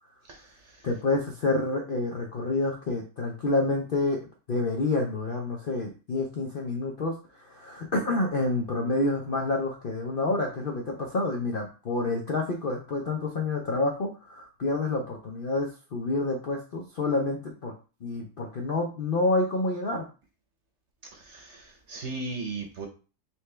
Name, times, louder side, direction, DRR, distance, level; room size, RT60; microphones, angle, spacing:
voice 1, 0.3-0.9 21.1-22.9, right 3 dB, 50° right, 3 dB, 0.9 m, -37 dB
voice 2, 0.8-17.7 18.0-20.1, left 2 dB, 90° left, 1 dB, 0.4 m, -28 dB
4.4 x 3.3 x 3.3 m, 0.35 s
omnidirectional pair, 1.8 m